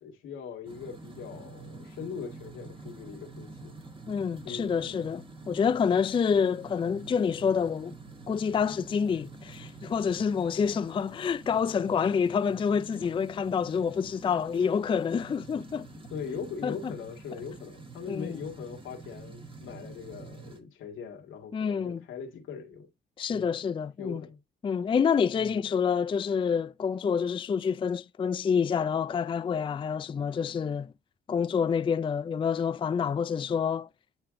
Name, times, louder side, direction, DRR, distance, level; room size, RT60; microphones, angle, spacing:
voice 1, 0.0-3.8 4.4-5.1 15.9-22.9 23.3-23.6 24.0-24.4 25.3-25.6, left 6 dB, 85° left, 1.9 m, -41 dB
sound 1, 0.7-20.6, right 3 dB, 25° right, 1.7 m, -47 dB
voice 2, 4.1-7.9 8.3-15.9 16.6-16.9 18.1-18.4 21.5-22.0 23.2-24.2 24.6-30.9 31.3-33.9, left 6 dB, 25° left, 0.3 m, -27 dB
8.9 x 3.5 x 3.6 m
cardioid pair, 90°, 20 cm